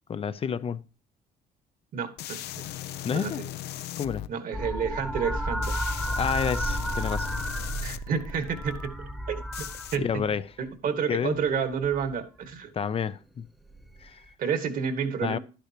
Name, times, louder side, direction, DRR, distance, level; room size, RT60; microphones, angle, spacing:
voice 1, 0.1-0.8 3.0-3.4 4.0-4.3 6.1-7.3 10.0-10.5 11.1-11.4 12.7-13.5 14.0-14.3 15.2-15.4, left 7 dB, 35° left, 0.5 m, -29 dB
voice 2, 1.9-2.7 3.1-3.4 4.3-5.8 7.8-9.7 9.9-10.0 10.6-12.7 14.4-15.4, right 6 dB, 55° right, 1.7 m, -30 dB
sound 1, 2.2-4.3 5.6-8.9 9.5-10.0, left 13 dB, 75° left, 0.6 m, -38 dB
sound 2, 4.5-10.3 11.5-12.0 13.8-13.9, equal, ahead, 1.1 m, -32 dB
11.5 x 10.0 x 2.9 m
cardioid pair, 110°, 17 cm